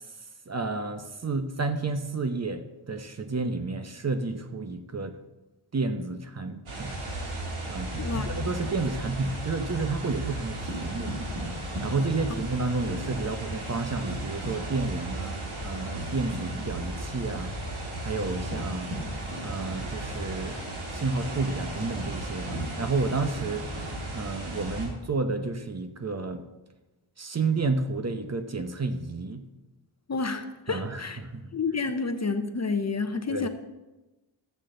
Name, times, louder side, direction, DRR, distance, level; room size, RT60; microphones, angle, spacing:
voice 1, 0.5-5.1 5.7-7.2 7.6-11.1 11.8-17.5 18.0-18.9 19.4-20.6 20.9-23.7 24.1-26.4 27.2-29.4 30.7-31.4 33.3-33.5, right 3 dB, 30° right, 8 dB, 0.9 m, -31 dB
sound 1, 6.7-24.9, right 1 dB, 80° right, 3.0 m, -35 dB
voice 2, 8.0-8.3 30.1-31.2 31.5-33.5, left 4 dB, 35° left, 8 dB, 0.8 m, -29 dB
12.5 x 8.3 x 3.9 m, 1.1 s
cardioid pair, 80°, 49 cm